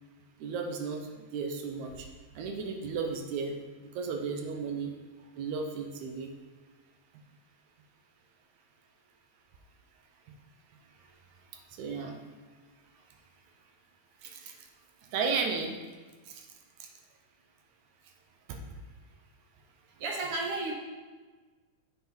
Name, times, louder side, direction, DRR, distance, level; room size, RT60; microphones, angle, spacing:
voice 1, 0.4-2.1 2.3-3.6 3.9-4.9 5.4-6.3 11.7-12.2 14.2-14.6 15.1-15.8 16.3-16.5 16.8-16.9 18.5-18.6, right 5 dB, 80° right, 3 dB, 2.2 m, -34 dB
voice 2, 20.0-20.7, right 3 dB, 60° right, -1 dB, 1.6 m, -32 dB
7.7 x 5.9 x 4.3 m, 1.3 s
omnidirectional pair, 3.4 m